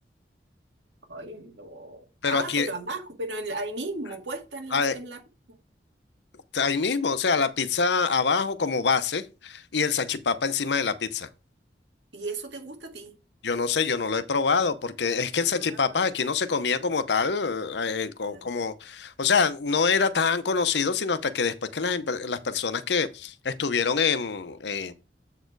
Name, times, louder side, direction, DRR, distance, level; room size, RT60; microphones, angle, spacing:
voice 1, 1.1-5.2 5.5-5.6 12.1-13.1 15.4-16.0 18.2-18.5, right 2 dB, 85° right, 1.9 m, -36 dB
voice 2, 2.2-2.7 4.7-5.0 6.5-11.3 13.4-24.9, left 5 dB, 75° left, 0.7 m, -25 dB
7.9 x 4.5 x 4.6 m
head